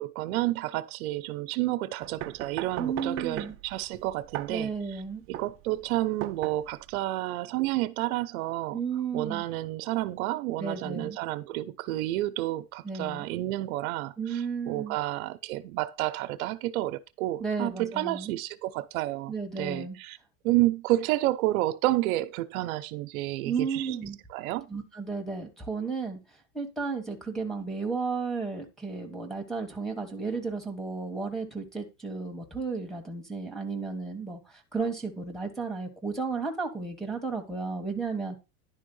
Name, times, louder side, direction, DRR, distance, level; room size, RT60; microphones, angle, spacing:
voice 1, 0.0-4.7 5.3-8.8 9.1-14.4 14.7-20.2 20.4-23.9 24.3-24.7, right 16 dB, 85° right, 0.8 m, -30 dB
sound 1, 2.0-7.0, right 13 dB, 30° right, 0.6 m, -39 dB
voice 2, 2.8-3.5 4.5-5.2 8.7-9.4 10.6-11.2 12.8-13.3 14.2-15.0 17.4-18.4 19.3-20.0 23.4-24.2 24.7-26.2 26.5-34.4 34.7-38.4, right 5 dB, ahead, 1.2 m, -33 dB
10.5 x 3.7 x 5.4 m
supercardioid pair, 145°, 41 cm